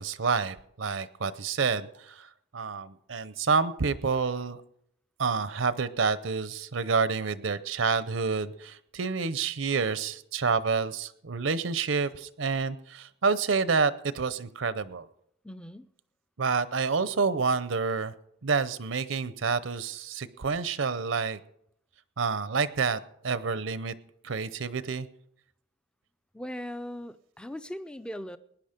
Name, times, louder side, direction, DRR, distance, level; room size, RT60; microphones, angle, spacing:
voice 1, 0.0-4.6 5.2-15.1 16.4-18.1 18.4-21.4 22.2-23.9 24.2-25.1, right 5 dB, 75° right, 15 dB, 0.7 m, -28 dB
voice 2, 15.4-15.9 26.3-28.4, equal, 5° left, 12 dB, 0.4 m, -39 dB
19.0 x 10.0 x 5.1 m, 0.73 s
head